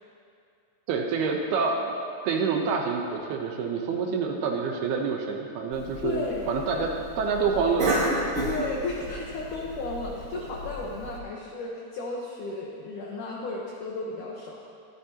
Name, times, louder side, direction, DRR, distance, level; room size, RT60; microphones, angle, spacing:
voice 1, 0.9-2.0 2.2-7.9, right 5 dB, 75° right, 2 dB, 2.5 m, -27 dB
Cough, 5.7-11.2, right 1 dB, 45° right, 1.0 m, -32 dB
voice 2, 6.0-6.5 8.4-14.6, left 3 dB, 75° left, -2 dB, 1.8 m, -34 dB
23.0 x 13.0 x 2.9 m, 2.4 s
omnidirectional pair, 5.3 m